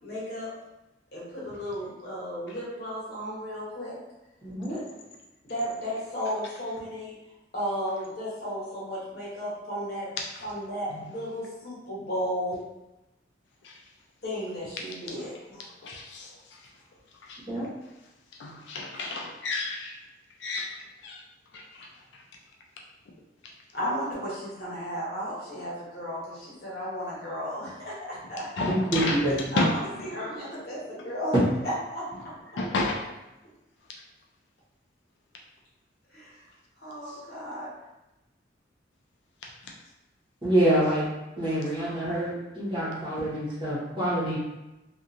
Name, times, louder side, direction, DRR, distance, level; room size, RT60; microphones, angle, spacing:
voice 1, 0.0-0.5 1.1-4.0 4.7-5.1 5.4-7.2 7.5-10.1 10.4-12.6 14.2-15.7 23.7-28.5 29.5-31.3 31.6-32.3 36.1-36.4 36.8-37.7, equal, 55° left, -7 dB, 1.1 m, -34 dB
voice 2, 4.4-4.8 17.5-17.6 28.7-29.4 40.4-41.1 41.4-44.4, right 1 dB, 30° right, -9 dB, 1.1 m, -26 dB
voice 3, 15.8-16.3 17.3-17.4 18.4-19.9 20.4-20.7 21.0-21.2 21.5-21.9 28.6-29.2 29.5-29.7 32.6-33.0, left 2 dB, 75° left, -1 dB, 0.4 m, -30 dB
2.8 x 2.4 x 2.5 m, 0.97 s
head